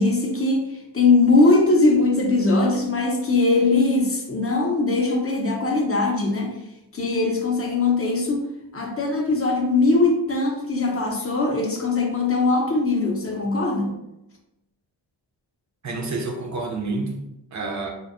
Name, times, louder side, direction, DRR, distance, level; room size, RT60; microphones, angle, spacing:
voice 1, 0.0-6.5 6.9-8.5 8.7-13.9, left 3 dB, 30° left, 1 dB, 0.6 m, -20 dB
voice 2, 15.8-17.9, right 3 dB, 40° right, 2 dB, 0.5 m, -29 dB
2.6 x 2.2 x 2.4 m, 0.88 s
cardioid pair, 60°, 44 cm